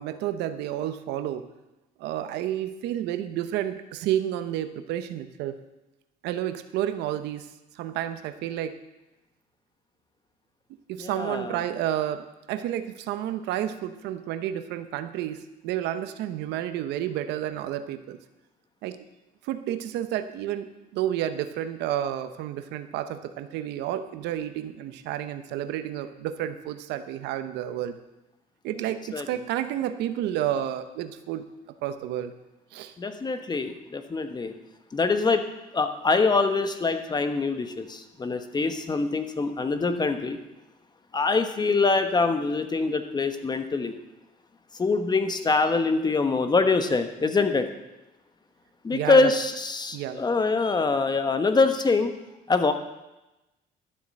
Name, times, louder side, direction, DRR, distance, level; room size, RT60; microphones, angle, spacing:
voice 1, 0.0-1.5 2.0-5.6 6.2-7.5 7.7-8.7 10.9-18.2 18.8-19.0 19.4-28.0 28.6-31.4 31.8-32.3 32.7-32.9 48.9-49.3 49.9-50.2, right 11 dB, 85° right, 10 dB, 0.9 m, -30 dB
voice 2, 11.0-11.5 29.1-29.3 33.0-34.5 34.9-35.4 35.7-40.4 41.1-43.9 44.8-47.7 48.8-52.1 52.5-52.7, left 3 dB, 25° left, 8 dB, 1.1 m, -24 dB
12.5 x 7.5 x 7.5 m, 0.98 s
cardioid pair, 110°, 17 cm